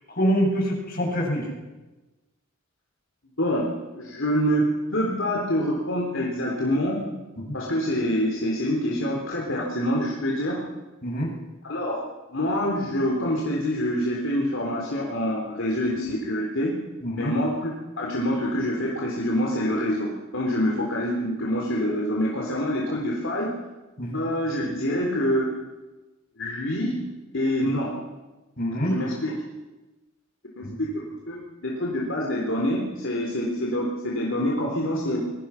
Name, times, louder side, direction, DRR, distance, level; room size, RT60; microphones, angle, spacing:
voice 1, 0.1-1.5 7.5-7.6 11.0-11.3 17.0-17.3 24.0-24.2 28.6-28.9 30.6-30.7, equal, 45° left, -1 dB, 7.5 m, -25 dB
voice 2, 3.4-4.7 4.9-7.0 7.5-10.6 11.6-12.0 12.3-16.8 17.1-23.6 24.1-25.6 26.4-27.1 27.3-28.0 28.8-29.3 30.6-30.9 31.3-35.3, equal, 60° left, -2 dB, 3.7 m, -26 dB
27.0 x 22.0 x 5.9 m, 1.2 s
head